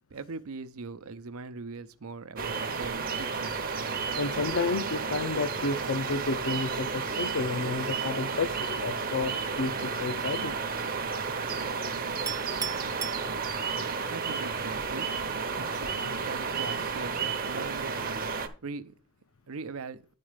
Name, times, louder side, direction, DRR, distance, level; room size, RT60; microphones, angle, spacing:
voice 1, 0.1-3.8 14.1-15.1 15.6-18.9 19.5-20.1, right 4 dB, 75° right, 0.6 m, -41 dB
sound 1, 2.4-18.5, right 5 dB, 40° right, 0.8 m, -32 dB
voice 2, 4.1-10.5, left 3 dB, 65° left, 0.5 m, -31 dB
Chink clink, 12.3-13.9, right 8 dB, 15° right, 0.4 m, -37 dB
10.0 x 4.2 x 4.9 m
head